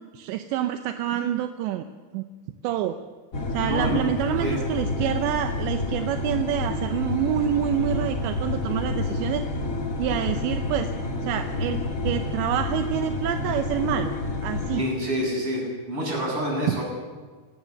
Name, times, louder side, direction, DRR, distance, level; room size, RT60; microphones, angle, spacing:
voice 1, 0.0-1.9 2.1-2.2 2.6-3.0 3.5-9.5 10.0-10.9 11.2-14.1 14.4-14.8 16.7-16.8, right 11 dB, 80° right, 7 dB, 3.0 m, -27 dB
sound 1, 3.3-14.8, left 2 dB, 65° left, 0.8 m, -29 dB
voice 2, 3.7-4.1 4.4-4.6 14.7-16.8, equal, 30° right, -1 dB, 7.9 m, -27 dB
29.5 x 17.5 x 6.7 m, 1.4 s
omnidirectional pair, 5.3 m